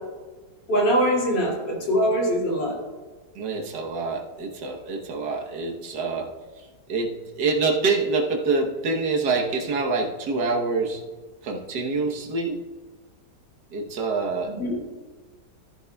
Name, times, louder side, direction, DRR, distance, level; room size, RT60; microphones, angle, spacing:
voice 1, 0.7-2.8 14.4-14.8, equal, 85° left, -4 dB, 3.2 m, -23 dB
voice 2, 3.3-11.0 11.4-12.7 13.7-14.5, right 3 dB, 70° right, 1 dB, 1.7 m, -26 dB
14.0 x 10.5 x 2.3 m, 1.3 s
omnidirectional pair, 1.9 m